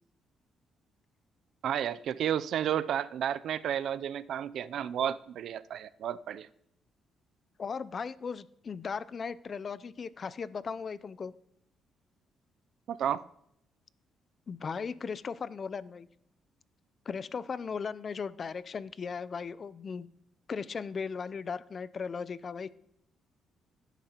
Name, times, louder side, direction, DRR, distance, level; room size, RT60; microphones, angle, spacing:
voice 1, 1.6-6.5 12.9-13.2, right 9 dB, 70° right, 0.4 m, -32 dB
voice 2, 7.6-11.3 14.5-16.1 17.1-20.1 20.5-22.7, left 5 dB, 45° left, 0.5 m, -37 dB
17.0 x 10.0 x 2.9 m
cardioid pair, 90°, 0 cm